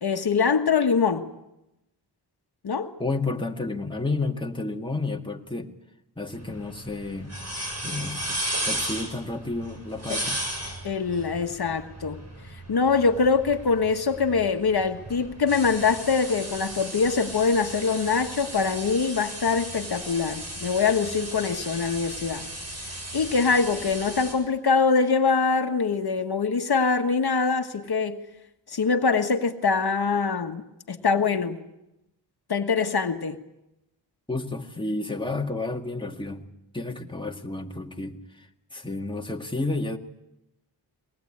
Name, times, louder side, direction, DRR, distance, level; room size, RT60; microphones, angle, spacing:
voice 1, 0.0-1.3 2.6-2.9 10.1-10.2 10.8-12.2 12.7-22.5 23.1-28.2 28.7-30.6 30.9-31.6 32.5-33.4, left 5 dB, 65° left, 7 dB, 1.5 m, -24 dB
voice 2, 3.0-5.7 6.2-7.4 7.8-10.4 34.3-36.5 36.7-40.0, left 2 dB, 10° left, 2 dB, 2.0 m, -31 dB
sound 1, 6.3-24.3, right 1 dB, 35° right, 7.2 m, -36 dB
22.5 x 19.0 x 8.6 m, 0.89 s
cardioid pair, 60°, 42 cm